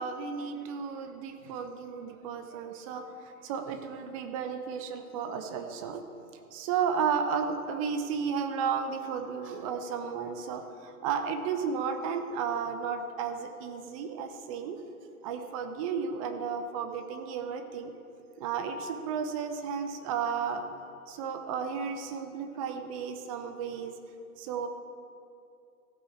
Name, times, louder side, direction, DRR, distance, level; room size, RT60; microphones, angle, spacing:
voice 1, 0.0-6.0 6.5-14.8 15.2-17.9 18.4-20.6 21.1-23.9 24.4-24.7, right 6 dB, 25° right, 7 dB, 0.7 m, -33 dB
15.0 x 8.4 x 4.7 m, 2.5 s
figure-of-eight pair, 115°, 45 cm